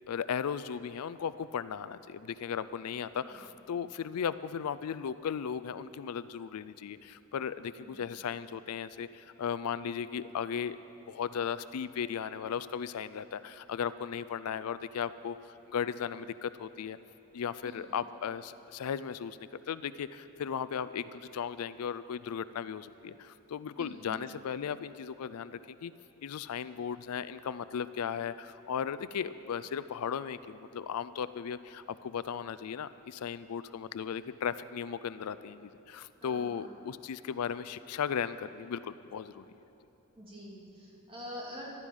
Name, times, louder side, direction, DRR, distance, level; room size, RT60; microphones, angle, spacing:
voice 1, 0.1-10.8 11.1-17.0 17.3-19.4 19.7-25.9 26.2-39.4, left 7 dB, 80° left, 15 dB, 0.4 m, -36 dB
voice 2, 23.8-24.1 36.2-36.7 40.2-41.7, left 1 dB, 25° right, -4 dB, 2.8 m, -46 dB
14.5 x 12.0 x 5.4 m, 2.9 s
head